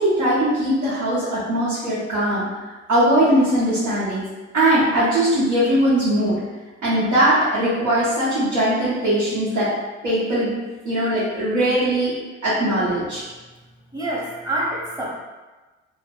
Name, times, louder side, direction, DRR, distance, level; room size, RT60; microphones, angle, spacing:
voice 1, 0.0-2.5 2.9-4.2 4.5-6.3 6.8-9.7 10.0-10.5 10.8-12.1 12.4-13.2, right 1 dB, 70° right, -12 dB, 1.0 m, -20 dB
voice 2, 13.9-15.1, right 1 dB, 10° right, -5 dB, 0.9 m, -26 dB
2.5 x 2.1 x 3.7 m, 1.2 s
figure-of-eight pair, 45°, 35 cm